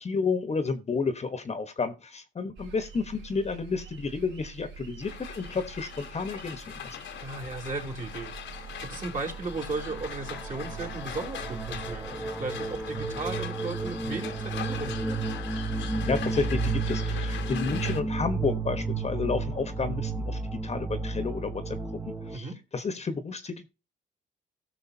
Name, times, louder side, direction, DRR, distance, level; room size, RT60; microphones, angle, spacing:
voice 1, 0.0-6.8 16.0-21.8 22.0-22.5 22.7-23.7, left 4 dB, 35° left, 10 dB, 1.2 m, -31 dB
sound 1, 2.6-12.1, right 6 dB, 70° right, 3.4 m, -45 dB
sound 2, 5.0-18.0, left 9 dB, 70° left, 1.3 m, -41 dB
voice 2, 7.2-15.3 22.3-22.6, right 3 dB, 40° right, 0 dB, 3.1 m, -36 dB
sound 3, 9.1-9.2 9.5-22.4, right 3 dB, 10° right, 1.1 m, -32 dB
17.5 x 6.5 x 2.8 m, 0.29 s
cardioid pair, 90°, 20 cm